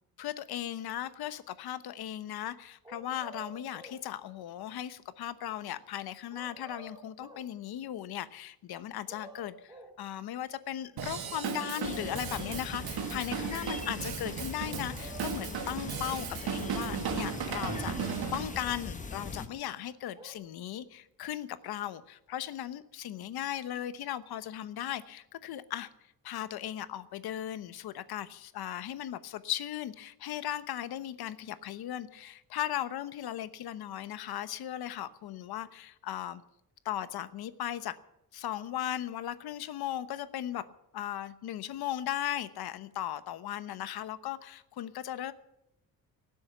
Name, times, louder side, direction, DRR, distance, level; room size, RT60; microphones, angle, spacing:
voice 1, 0.2-25.9 26.2-36.4 36.8-37.9 38.3-40.7 40.9-45.3, left 11 dB, 80° left, 13 dB, 1.0 m, -37 dB
sound 1, 2.8-4.0 6.3-7.5 8.8-10.0 11.2-12.7 14.6-15.8 17.6-18.8 19.9-20.3, right 1 dB, 10° right, 2.2 m, -50 dB
Drum kit / Drum, 11.0-18.5, right 7 dB, 80° right, 2.0 m, -36 dB
sound 2, 11.8-19.5, left 4 dB, 20° left, 1.2 m, -41 dB
18.0 x 7.8 x 9.0 m, 0.82 s
cardioid pair, 140°, 37 cm